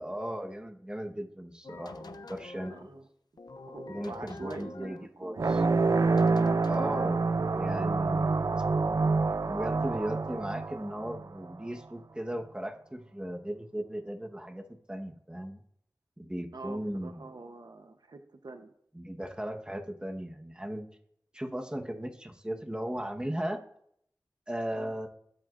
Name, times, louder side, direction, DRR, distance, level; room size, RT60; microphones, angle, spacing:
voice 1, 0.0-2.9 3.9-5.6 6.7-7.2 7.5-8.4 9.5-15.6 16.2-17.3 18.9-20.9 21.3-23.6 24.5-25.1, equal, 15° right, 3 dB, 1.3 m, -37 dB
sound 1, 1.6-2.9 3.4-5.1 5.5-7.2, left 2 dB, 75° left, 0.6 m, -45 dB
voice 2, 2.7-3.1 3.7-5.6 16.5-18.7 24.7-24.9, right 3 dB, 75° right, 6 dB, 1.0 m, -45 dB
sound 2, 5.4-11.5, right 3 dB, 50° right, 0.4 m, -27 dB
20.5 x 8.0 x 2.6 m, 0.70 s
wide cardioid pair, 45°, 7 cm